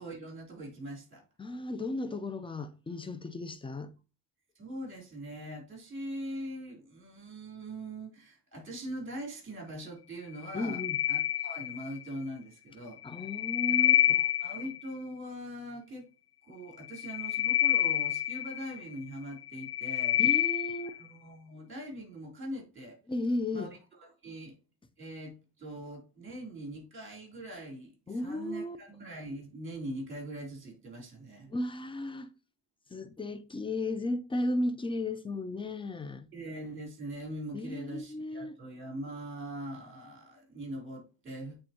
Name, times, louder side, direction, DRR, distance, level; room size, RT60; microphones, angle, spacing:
voice 1, 0.0-1.2 4.6-10.8 11.1-13.3 13.7-16.1 16.4-20.2 20.8-23.0 23.5-23.7 24.2-24.5 25.0-31.5 36.3-41.6, right 1 dB, 30° right, 3.7 m, -42 dB
voice 2, 1.4-3.9 10.5-11.0 13.0-14.2 20.2-20.9 23.1-23.7 28.1-28.8 31.5-32.3 32.9-36.3 37.5-38.6, left 2 dB, 10° left, 0.6 m, -34 dB
sound 1, 10.4-12.1 13.0-14.9 16.8-18.9 19.4-21.0, left 12 dB, 70° left, 0.7 m, -28 dB
8.6 x 3.7 x 2.9 m
supercardioid pair, 85°, 42 cm